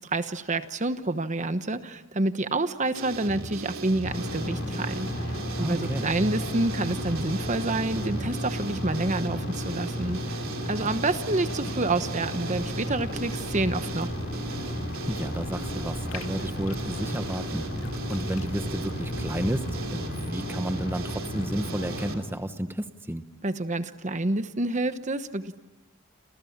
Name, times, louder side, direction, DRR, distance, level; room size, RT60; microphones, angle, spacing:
voice 1, 0.0-10.2 10.7-14.1 23.4-25.6, right 2 dB, 35° right, 10 dB, 1.1 m, -28 dB
sound 1, 2.9-22.1, right 2 dB, 75° right, 3.1 m, -37 dB
sound 2, 4.0-22.2, left 1 dB, 50° left, 6.6 m, -34 dB
voice 2, 5.6-6.1 10.8-10.9 15.1-17.7 18.1-23.2, right 1 dB, 10° right, 9 dB, 1.0 m, -32 dB
sound 3, 12.5-19.9, left 3 dB, 70° left, 2.4 m, -47 dB
28.5 x 28.0 x 7.3 m, 1.1 s
head